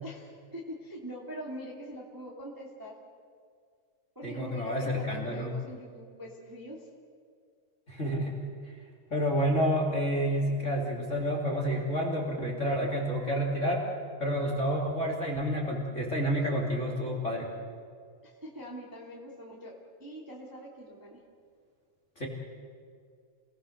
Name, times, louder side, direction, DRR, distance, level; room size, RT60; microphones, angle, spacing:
voice 1, 0.0-2.9 4.1-6.8 12.7-12.9 18.2-19.7 20.0-21.2, equal, 5° right, -2 dB, 2.3 m, -43 dB
voice 2, 4.2-5.5 7.9-8.4 9.1-13.8 14.2-17.5 22.2-22.3, equal, 25° left, -1 dB, 2.8 m, -29 dB
29.0 x 19.0 x 6.6 m, 2.1 s
omnidirectional pair, 3.8 m